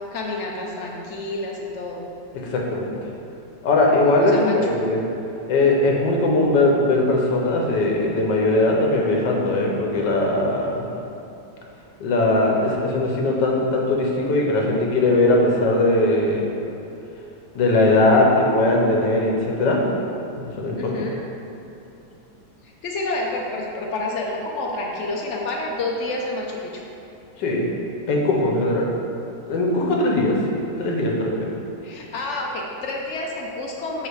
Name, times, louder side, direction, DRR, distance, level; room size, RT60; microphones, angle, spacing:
voice 1, 0.1-2.0 4.2-4.7 20.8-21.3 22.6-26.8 31.8-34.1, left 2 dB, 60° left, -1 dB, 0.7 m, -29 dB
voice 2, 2.4-3.0 3.6-5.0 5.5-10.9 12.0-16.4 17.5-19.8 20.6-20.9 27.4-27.7 28.1-28.9 29.5-31.5, left 2 dB, 80° left, -1 dB, 1.5 m, -20 dB
7.8 x 3.0 x 4.6 m, 2.9 s
omnidirectional pair, 1.9 m